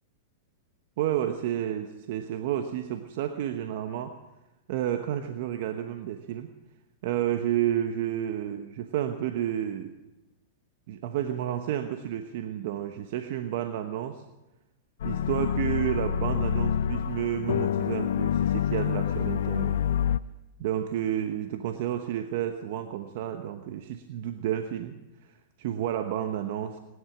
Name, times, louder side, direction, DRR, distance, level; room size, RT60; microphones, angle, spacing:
voice 1, 1.0-4.1 4.7-6.5 7.0-9.9 10.9-14.2 15.0-19.8 20.6-25.0 25.6-26.8, right 11 dB, 60° right, 7 dB, 1.1 m, -31 dB
sound 1, 15.0-20.2, left 9 dB, 80° left, 0.5 m, -27 dB
20.0 x 11.0 x 6.1 m, 1.0 s
hypercardioid pair, 125°, 0 cm